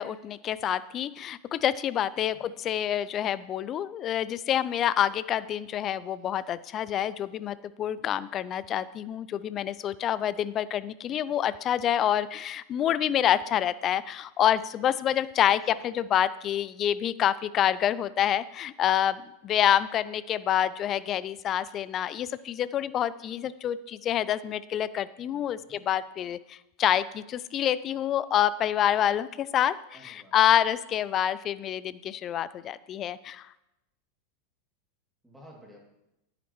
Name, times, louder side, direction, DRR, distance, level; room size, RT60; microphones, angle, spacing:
voice 1, 0.0-33.5, left 10 dB, 35° left, 18 dB, 0.3 m, -27 dB
voice 2, 2.2-2.5 15.6-16.0 25.5-25.9 29.9-30.3 35.2-35.8, equal, 5° right, -2 dB, 2.7 m, -53 dB
10.0 x 9.0 x 3.1 m, 0.90 s
figure-of-eight pair, 90°, 0 cm